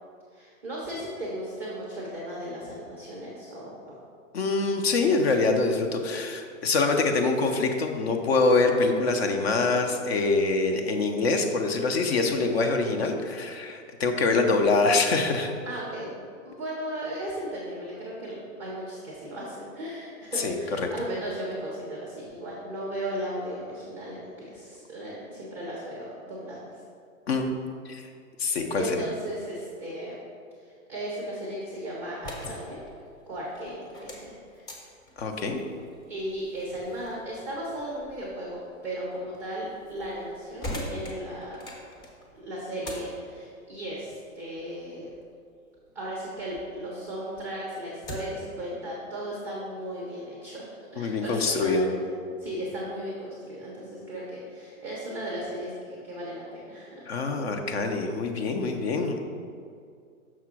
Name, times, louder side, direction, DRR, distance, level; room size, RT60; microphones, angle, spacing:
voice 1, 0.3-4.0 15.6-16.1 16.4-26.7 28.8-30.2 30.6-32.9 33.3-34.3 34.5-34.7 36.1-41.6 42.3-45.1 45.9-52.1 52.4-57.1, right 1 dB, 5° right, -4 dB, 0.4 m, -36 dB
voice 2, 4.3-15.5 20.4-20.9 27.3-27.6 27.8-28.1 28.4-29.0 35.2-35.6 51.0-51.9 57.1-59.2, left 3 dB, 50° left, 5 dB, 0.8 m, -25 dB
sound 1, 32.0-46.7 47.1-48.5, left 1 dB, 20° left, 0.9 m, -44 dB
6.1 x 3.6 x 6.0 m, 2.3 s
hypercardioid pair, 155°, 40 cm